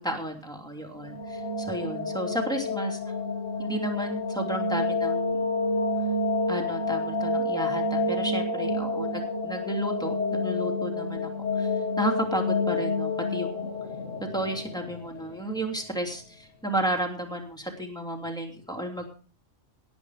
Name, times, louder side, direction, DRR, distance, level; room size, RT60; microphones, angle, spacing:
voice 1, 0.0-3.0 3.6-5.4 6.5-11.7 12.0-13.7 14.2-19.0, right 1 dB, 5° left, 2 dB, 2.9 m, -32 dB
sound 1, 0.8-15.7, left 2 dB, 80° left, 3.6 m, -29 dB
18.5 x 8.7 x 5.0 m, 0.40 s
omnidirectional pair, 1.3 m